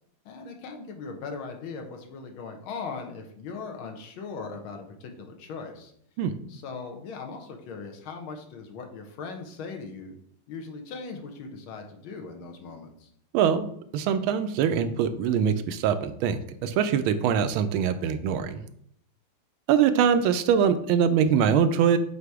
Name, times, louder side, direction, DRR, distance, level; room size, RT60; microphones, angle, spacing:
voice 1, 0.3-5.9 6.5-10.2 10.5-13.1, left 4 dB, 80° left, 4 dB, 1.7 m, -39 dB
voice 2, 13.3-13.7 13.9-18.6 19.7-22.0, right 8 dB, 85° right, 10 dB, 1.4 m, -23 dB
7.9 x 2.8 x 4.7 m, 0.68 s
omnidirectional pair, 2.3 m